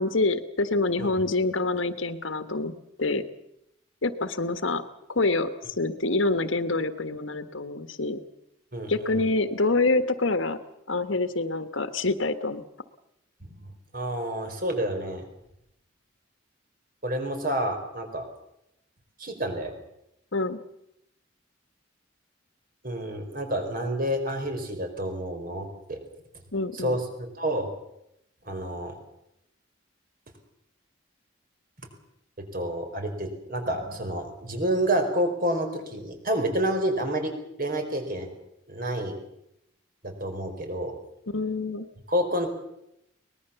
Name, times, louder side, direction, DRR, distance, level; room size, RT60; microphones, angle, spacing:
voice 1, 0.0-2.7 3.0-3.2 4.0-4.8 5.1-8.2 8.9-10.6 10.9-12.6 20.3-20.6 26.5-27.0 41.3-41.9, left 2 dB, 75° left, 10 dB, 1.5 m, -26 dB
voice 2, 8.7-9.2 13.4-15.2 17.0-18.3 19.2-19.8 22.8-26.0 26.7-27.7 28.4-28.9 32.5-38.3 38.7-39.1 40.0-41.0 42.1-42.5, right 1 dB, 45° right, 6 dB, 4.6 m, -29 dB
23.5 x 20.0 x 7.0 m, 0.82 s
head